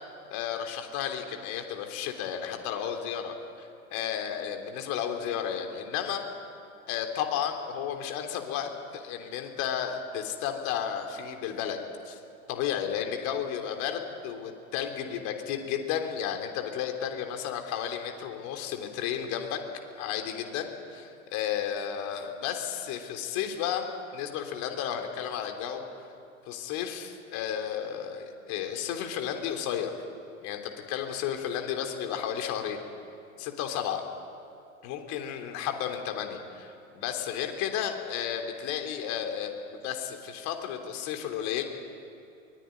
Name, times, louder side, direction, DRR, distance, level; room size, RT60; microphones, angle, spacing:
voice 1, 0.3-6.2 6.9-11.8 12.0-12.2 12.5-19.6 19.9-25.9 26.5-29.9 30.4-32.8 33.4-34.0 34.8-41.6, left 9 dB, 45° left, 4 dB, 3.4 m, -33 dB
23.0 x 21.0 x 9.5 m, 2.7 s
figure-of-eight pair, 90°, 41 cm